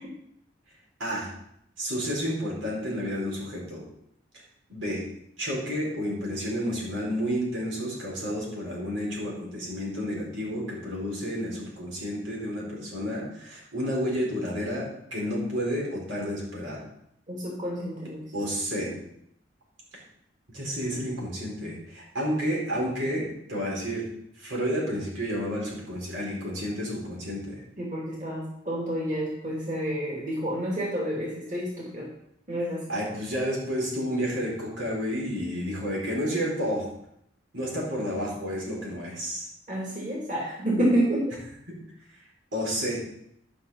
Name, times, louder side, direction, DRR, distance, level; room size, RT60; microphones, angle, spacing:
voice 1, 1.0-1.3 1.8-3.8 4.7-5.0 5.4-16.8 18.3-18.9 20.5-24.1 24.4-27.6 32.9-36.9 37.5-39.5 41.7-41.8 42.5-43.0, equal, 85° right, -3 dB, 4.5 m, -30 dB
voice 2, 17.3-18.2 27.8-32.1 32.5-32.8 39.7-41.2, right 1 dB, 40° right, -4 dB, 2.7 m, -29 dB
11.5 x 6.2 x 5.6 m, 0.74 s
head